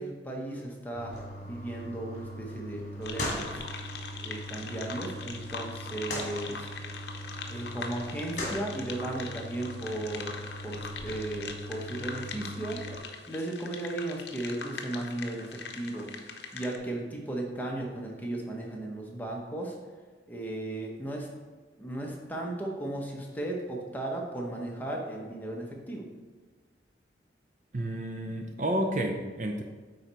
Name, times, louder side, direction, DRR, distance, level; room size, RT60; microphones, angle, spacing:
voice 1, 0.0-3.6 4.2-6.7 7.5-10.3 10.6-12.8 13.3-16.1 16.5-19.7 20.3-21.3 21.8-26.1, right 1 dB, 10° left, -1 dB, 0.9 m, -36 dB
sound 1, 1.0-13.0, equal, 40° left, 1.7 m, -40 dB
sound 2, 3.0-16.8, left 4 dB, 65° left, 0.7 m, -42 dB
voice 2, 27.7-29.6, right 1 dB, 40° right, 3 dB, 0.5 m, -30 dB
9.1 x 4.0 x 4.4 m, 1.4 s
head